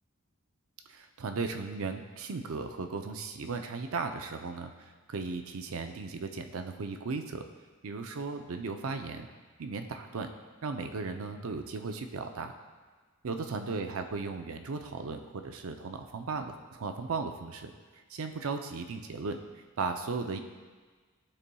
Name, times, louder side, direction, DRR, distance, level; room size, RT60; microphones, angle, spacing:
voice 1, 0.9-4.7 5.1-7.4 7.8-9.3 9.6-10.3 10.6-12.5 13.2-17.7 18.1-19.4 19.8-20.4, right 4 dB, 70° right, 6 dB, 0.5 m, -36 dB
12.0 x 4.1 x 2.3 m, 1.4 s
head